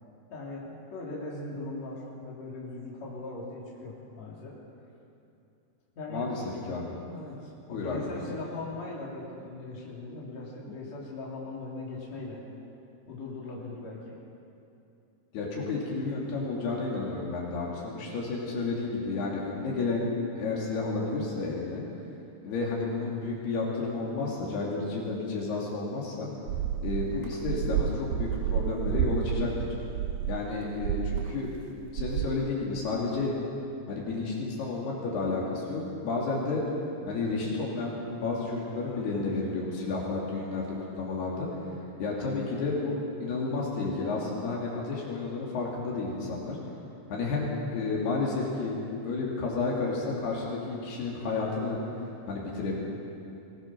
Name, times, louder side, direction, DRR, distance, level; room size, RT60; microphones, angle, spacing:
voice 1, 0.3-4.6 5.9-6.2 7.1-12.4 13.1-14.1 38.8-39.3, left 2 dB, 45° left, -5 dB, 4.6 m, -39 dB
voice 2, 7.7-8.4 15.3-20.0 20.4-21.8 22.4-26.3 26.8-29.5 30.3-31.5 31.9-33.3 33.9-36.6 37.1-41.5 42.0-46.6 47.1-48.8 49.0-51.8 52.3-52.8, left 3 dB, 70° left, -4 dB, 4.8 m, -31 dB
sound 1, 26.5-31.6 31.9-32.3, right 9 dB, 80° right, 2.1 m, -30 dB
23.5 x 19.5 x 6.2 m, 2.8 s
omnidirectional pair, 4.7 m